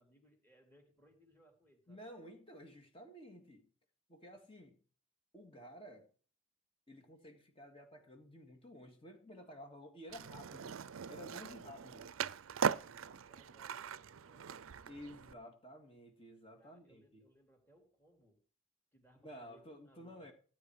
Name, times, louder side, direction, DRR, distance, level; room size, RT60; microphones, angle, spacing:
voice 1, 0.0-2.0 12.5-14.7 16.6-18.4 18.9-20.3, right 1 dB, 10° left, 3.1 m, -67 dB
voice 2, 1.9-3.7 4.1-4.8 5.3-6.1 6.9-10.8 11.1-12.1 14.9-17.2 19.2-20.3, equal, 25° left, 2.1 m, -53 dB
Skateboard, 10.1-15.3, right 7 dB, 80° right, 0.5 m, -40 dB
16.0 x 9.4 x 4.8 m
head